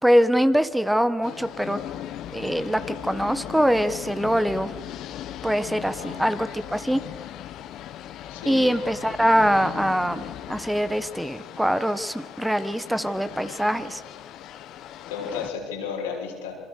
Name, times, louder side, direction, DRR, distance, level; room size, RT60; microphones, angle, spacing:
voice 1, 0.0-1.8 2.3-4.7 5.4-7.0 8.5-14.0, equal, 5° right, 12 dB, 1.4 m, -23 dB
sound 1, 1.2-15.5, left 11 dB, 65° left, 1.5 m, -38 dB
voice 2, 8.3-8.7 15.1-16.5, left 6 dB, 90° left, 0 dB, 6.0 m, -33 dB
27.5 x 23.5 x 6.7 m, 1.3 s
hypercardioid pair, 70°, 0 cm